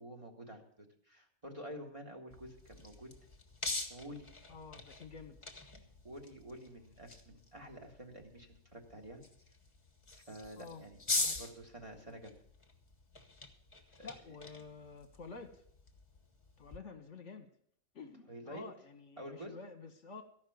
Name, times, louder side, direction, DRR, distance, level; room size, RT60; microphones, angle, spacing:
voice 1, 0.0-3.1 3.9-4.3 6.0-9.2 10.1-11.0 11.4-12.3 14.0-14.1 18.3-18.7 19.2-19.5, equal, 25° right, 1 dB, 1.9 m, -49 dB
sound 1, 2.3-16.8, left 2 dB, 20° left, 1.3 m, -44 dB
voice 2, 4.5-5.4 10.6-10.8 11.2-11.4 14.0-15.6 16.6-17.5 17.9-20.2, left 4 dB, 60° left, 6 dB, 1.3 m, -50 dB
14.5 x 5.9 x 9.2 m, 0.65 s
omnidirectional pair, 1.5 m